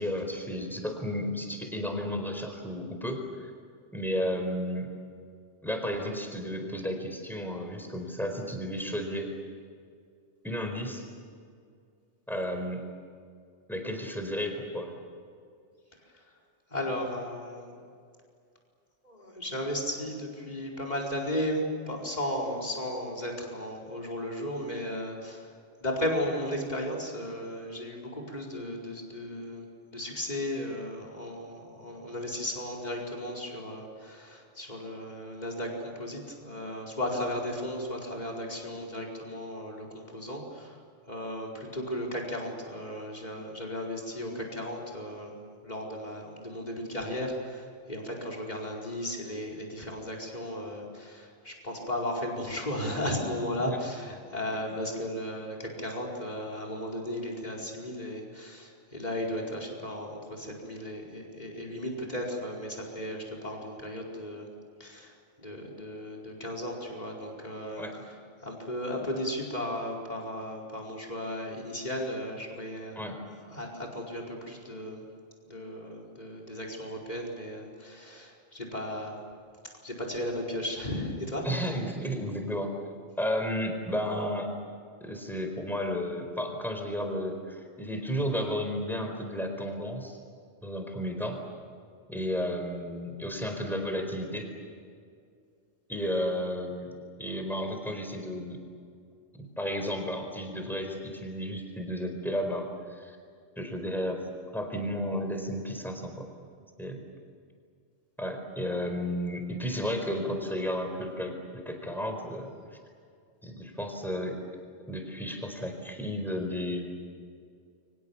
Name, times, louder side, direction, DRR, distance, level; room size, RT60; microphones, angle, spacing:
voice 1, 0.0-3.5 3.9-4.9 5.6-9.3 10.4-11.0 12.3-12.8 13.7-14.9 53.6-53.8 54.5-54.7 67.8-67.9 72.9-73.2 81.4-82.7 83.2-84.5 85.0-90.2 90.6-91.4 92.1-94.5 95.9-96.9 97.2-98.6 99.4-103.2 103.6-104.3 104.5-106.3 106.8-107.0 108.2-112.5 113.4-114.4 114.9-117.0, equal, ahead, 4 dB, 4.5 m, -33 dB
voice 2, 16.7-17.7 19.0-25.5 25.8-29.7 29.9-40.8 41.1-45.4 45.6-64.5 64.8-67.8 68.4-73.0 73.4-75.0 75.4-79.2 79.8-81.5, left 1 dB, 35° left, 0 dB, 5.0 m, -35 dB
29.5 x 24.5 x 7.2 m, 2.3 s
omnidirectional pair, 1.3 m